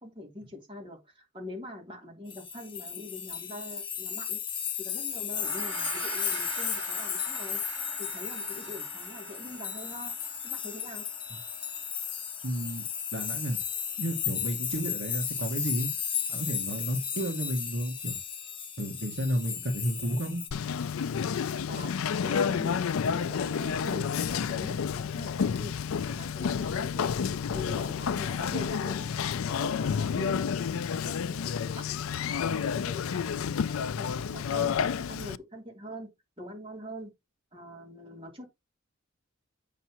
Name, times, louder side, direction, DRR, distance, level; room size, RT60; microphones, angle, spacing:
voice 1, 0.0-4.4 4.8-7.6 8.0-10.1 10.4-11.0 21.7-29.1 29.5-32.0 32.4-34.8 35.1-36.1 36.4-37.1 37.5-38.4, left 1 dB, 25° right, 3.0 m, -43 dB
sound 1, 2.3-20.5, left 8 dB, 25° left, 1.0 m, -35 dB
Gong, 5.3-14.9, right 5 dB, 90° right, 1.9 m, -45 dB
voice 2, 12.4-13.6 14.0-15.9 16.3-18.2 18.8-20.4, right 1 dB, 65° right, 1.5 m, -32 dB
Conversation, 20.5-35.4, left 7 dB, 80° left, 0.4 m, -30 dB
8.4 x 6.6 x 2.9 m
head